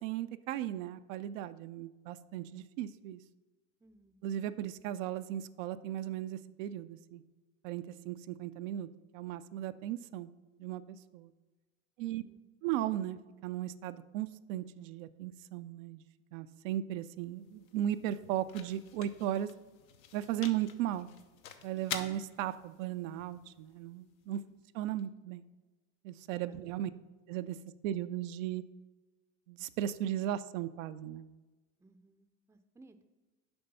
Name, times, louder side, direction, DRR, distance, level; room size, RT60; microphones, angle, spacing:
voice 1, 0.0-3.2 4.2-7.2 7.6-8.9 9.1-10.3 10.6-11.3 12.0-12.2 12.6-16.0 16.3-19.5 20.1-21.1 21.6-24.4 24.7-25.4 26.0-26.9 27.3-27.6 27.8-28.6 29.5-31.3, right 12 dB, 70° right, 11 dB, 0.5 m, -36 dB
voice 2, 3.8-4.2 12.0-12.4 24.4-24.6 26.5-27.0 31.8-33.1, right 2 dB, 5° right, 9 dB, 0.5 m, -62 dB
sound 1, 16.9-25.0, left 8 dB, 80° left, 0.9 m, -48 dB
7.8 x 5.2 x 5.5 m, 1.2 s
hypercardioid pair, 85°, 41 cm